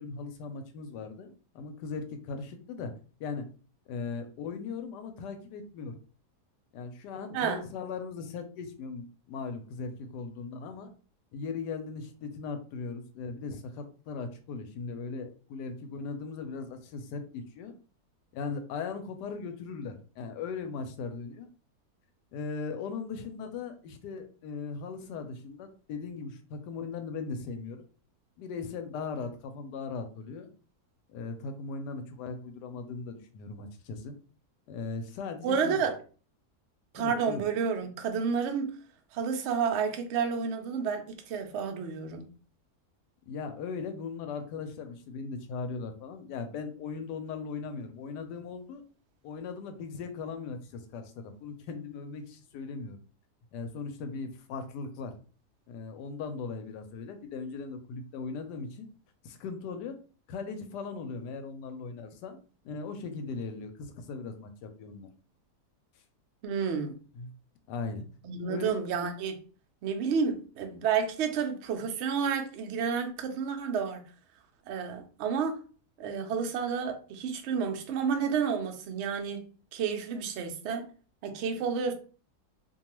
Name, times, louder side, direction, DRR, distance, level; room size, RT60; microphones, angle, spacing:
voice 1, 0.0-2.9 3.2-3.5 3.9-6.0 6.7-10.9 11.3-17.7 18.3-21.5 22.3-27.8 28.4-30.5 31.1-34.2 34.7-35.8 36.9-37.4 43.3-48.8 49.2-53.0 53.5-55.1 55.7-58.9 59.2-60.0 60.3-62.4 62.6-65.1 67.1-67.3 67.7-68.0 68.5-68.7, left 4 dB, 90° left, 1.2 m, -38 dB
voice 2, 35.4-35.9 36.9-38.8 39.1-42.3 66.4-67.0 68.2-69.4 69.8-74.0 74.7-75.6 76.0-79.4 79.7-80.9 81.2-81.9, right 6 dB, 80° right, 0.6 m, -30 dB
2.6 x 2.3 x 2.9 m
omnidirectional pair, 1.7 m